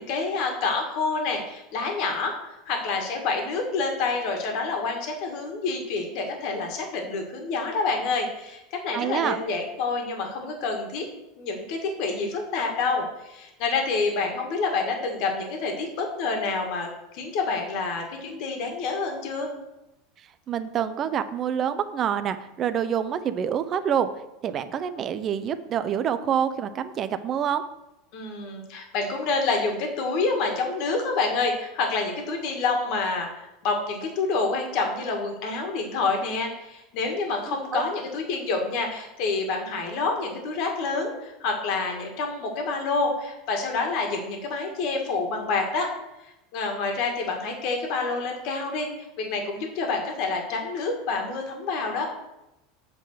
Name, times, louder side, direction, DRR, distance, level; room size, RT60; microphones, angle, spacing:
voice 1, 0.0-2.3 2.7-11.0 11.4-19.5 28.1-33.3 33.6-45.9 46.5-48.9 49.2-52.1, left 4 dB, 50° left, 2 dB, 1.8 m, -28 dB
voice 2, 8.9-9.4 20.5-24.1 24.4-27.6 37.5-37.8, right 8 dB, 30° right, 11 dB, 0.6 m, -27 dB
8.9 x 3.9 x 6.6 m, 0.93 s
supercardioid pair, 150°, 0 cm